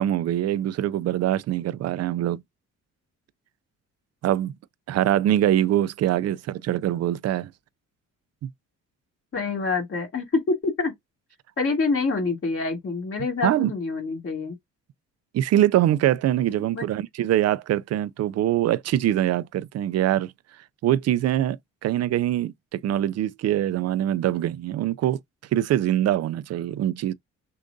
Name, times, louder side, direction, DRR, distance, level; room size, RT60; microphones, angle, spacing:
voice 1, 0.0-2.4 4.2-4.5 4.9-7.5 8.4-8.5 13.4-13.7 15.3-20.3 20.8-21.6 21.8-25.2 25.5-27.1, right 12 dB, 55° right, 0.4 m, -23 dB
voice 2, 9.3-10.9 11.6-14.6 16.7-16.8, left 3 dB, 45° left, 2.4 m, -26 dB
6.4 x 2.5 x 2.6 m
cardioid pair, 90°, 30 cm